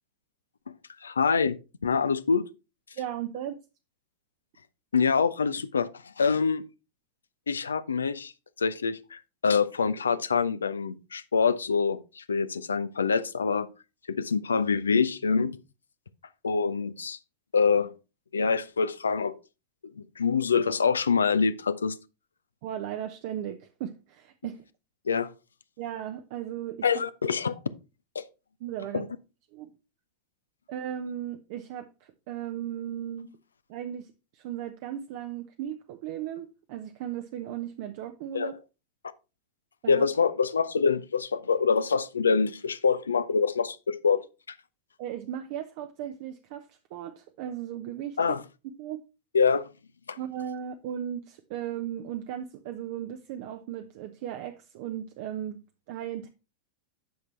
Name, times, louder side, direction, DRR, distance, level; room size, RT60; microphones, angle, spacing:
voice 1, 1.0-2.5 4.9-5.9 6.2-6.6 7.5-8.3 8.6-13.7 14.1-15.6 16.4-17.2 17.5-17.9 18.3-19.3 20.0-22.0 25.1-25.3 26.8-27.6 28.1-28.2 28.9-29.1 38.3-38.5 39.9-44.2 48.2-48.4 49.3-49.7 50.1-50.2, left 5 dB, 70° left, 0.6 m, -25 dB
voice 2, 3.0-3.6 22.6-24.6 25.8-26.9 28.6-29.1 29.5-29.7 30.7-33.3 33.7-38.6 39.8-40.0 45.0-48.4 48.8-49.0 50.2-55.6 55.9-56.3, right 10 dB, 50° right, 0.7 m, -36 dB
10.0 x 6.0 x 3.2 m
figure-of-eight pair, 90°, 0 cm